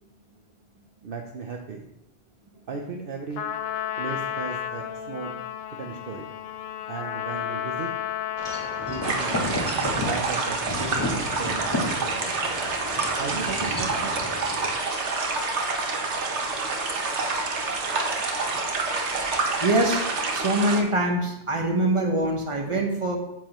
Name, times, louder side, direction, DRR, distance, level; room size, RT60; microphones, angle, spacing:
voice 1, 1.0-1.9 2.7-3.5 4.0-5.3 5.7-6.3 6.9-7.9 8.8-9.4 10.1-11.1 11.4-12.3 13.1-14.1, right 5 dB, 55° right, 2 dB, 0.9 m, -36 dB
Trumpet, 3.4-9.6, left 10 dB, 70° left, 0.8 m, -32 dB
Wind chime / Wind, 8.4-14.7, left 1 dB, 20° left, 1.5 m, -32 dB
sound 1, 9.0-20.8, right 3 dB, 85° right, 1.3 m, -27 dB
voice 2, 19.6-23.2, right 1 dB, 30° right, 2 dB, 1.2 m, -24 dB
9.3 x 7.4 x 3.0 m, 0.86 s
omnidirectional pair, 1.1 m